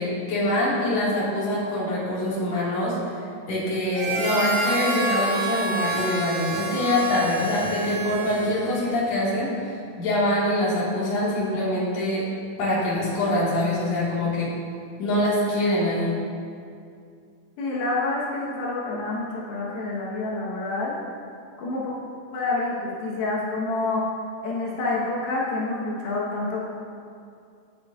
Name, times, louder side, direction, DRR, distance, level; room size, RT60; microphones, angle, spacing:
voice 1, 0.0-2.9 3.5-12.2 12.6-14.5 15.0-16.1, left 1 dB, 55° left, -7 dB, 2.9 m, -24 dB
Harmonica, 3.9-8.9, right 2 dB, 90° right, 1.3 m, -28 dB
voice 2, 17.6-21.0 21.6-21.9 22.3-24.1 24.4-26.7, left 2 dB, 85° left, -5 dB, 3.2 m, -28 dB
12.0 x 8.3 x 2.5 m, 2.4 s
omnidirectional pair, 4.1 m